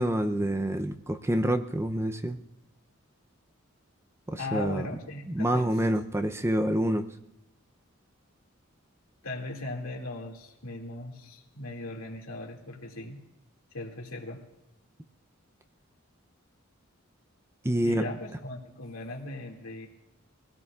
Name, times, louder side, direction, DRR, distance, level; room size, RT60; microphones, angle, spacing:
voice 1, 0.0-2.4 4.3-4.9 5.3-7.1 17.6-18.1, right 1 dB, 15° right, 7 dB, 0.5 m, -27 dB
voice 2, 4.4-5.7 9.2-13.2 13.7-14.4 17.8-19.9, left 2 dB, 90° left, 0 dB, 2.3 m, -38 dB
23.0 x 16.5 x 2.4 m, 0.90 s
head